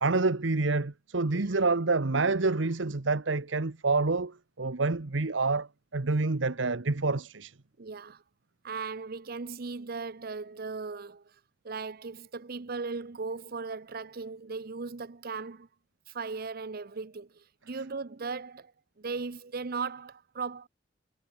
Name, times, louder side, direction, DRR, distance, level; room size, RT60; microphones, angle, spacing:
voice 1, 0.0-7.5, right 3 dB, 75° right, 1.1 m, -27 dB
voice 2, 7.8-8.2 8.6-11.4 11.6-15.7 16.1-18.7 19.0-20.7, right 4 dB, 50° right, 0.7 m, -37 dB
head